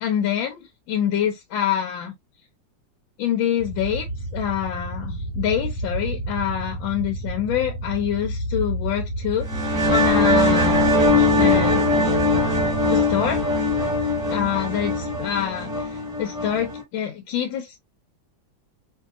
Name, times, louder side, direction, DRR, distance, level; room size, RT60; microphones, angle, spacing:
voice 1, 0.0-2.1 3.2-4.1 4.3-11.9 12.9-13.4 14.3-17.8, left 10 dB, 90° left, 1.4 m, -26 dB
sound 1, 3.6-15.3, right 2 dB, 65° left, 1.4 m, -31 dB
sound 2, 9.4-16.8, left 2 dB, ahead, 1.3 m, -21 dB
3.0 x 2.7 x 2.3 m
omnidirectional pair, 2.1 m